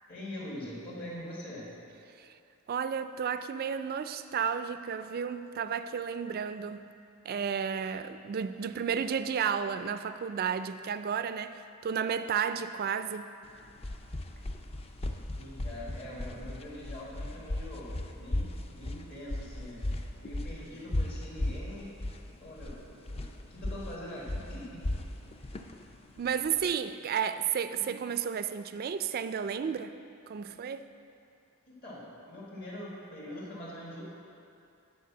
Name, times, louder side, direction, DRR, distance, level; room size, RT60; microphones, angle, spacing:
voice 1, 0.1-1.7 15.4-18.5 18.7-19.8 20.2-21.9 22.3-22.8 23.1-23.2 23.5-24.8 31.7-34.0, left 1 dB, 50° left, -7 dB, 1.8 m, -43 dB
voice 2, 2.7-6.9 7.3-13.3 26.2-29.9 30.3-30.9, right 7 dB, 45° right, 11 dB, 0.3 m, -32 dB
sound 1, 13.5-26.7, left 1 dB, 30° left, 0.4 m, -36 dB
9.3 x 4.6 x 7.0 m, 2.6 s
head